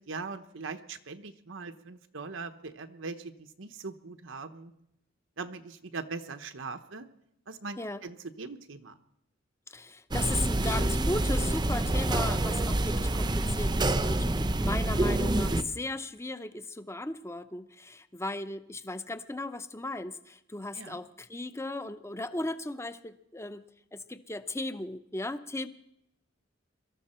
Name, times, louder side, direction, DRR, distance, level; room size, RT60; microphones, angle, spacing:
voice 1, 0.1-4.7 5.4-7.1 7.5-9.0 20.7-21.0, right 4 dB, 85° right, 7 dB, 1.0 m, -41 dB
voice 2, 9.7-23.6 23.9-25.7, left 2 dB, 15° left, 12 dB, 0.7 m, -36 dB
sound 1, 10.1-15.6, right 1 dB, 20° right, 0.7 m, -27 dB
23.5 x 13.5 x 4.4 m, 0.79 s
head